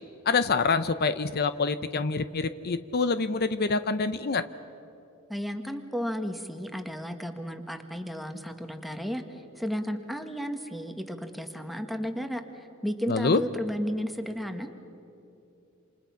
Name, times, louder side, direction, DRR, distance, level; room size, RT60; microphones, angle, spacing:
voice 1, 0.3-4.5 13.1-13.4, left 4 dB, 50° left, 12 dB, 0.7 m, -26 dB
voice 2, 5.3-9.2 9.6-12.4 12.8-14.7, equal, ahead, 5 dB, 1.6 m, -33 dB
28.0 x 27.5 x 5.8 m, 2.8 s
head